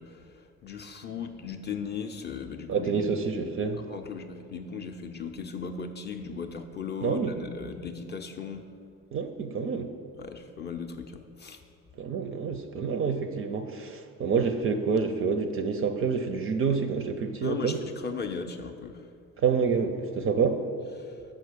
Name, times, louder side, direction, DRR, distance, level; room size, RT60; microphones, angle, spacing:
voice 1, 0.0-3.5 3.9-8.7 10.2-11.6 17.4-19.1 21.0-21.1, left 6 dB, 25° left, 4 dB, 0.5 m, -37 dB
voice 2, 2.7-3.8 7.0-7.3 9.1-9.9 12.0-17.8 19.4-20.6, right 5 dB, 35° right, 8 dB, 0.5 m, -28 dB
6.1 x 4.9 x 6.6 m, 2.3 s
figure-of-eight pair, 50°, 41 cm